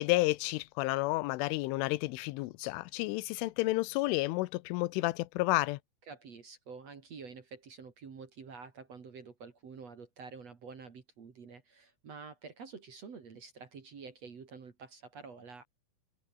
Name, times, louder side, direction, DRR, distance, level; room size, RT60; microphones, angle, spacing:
voice 1, 0.0-5.8, left 20 dB, 85° left, 3.2 m, -31 dB
voice 2, 6.1-15.6, right 5 dB, 40° right, 2.9 m, -48 dB
omnidirectional pair, 5.5 m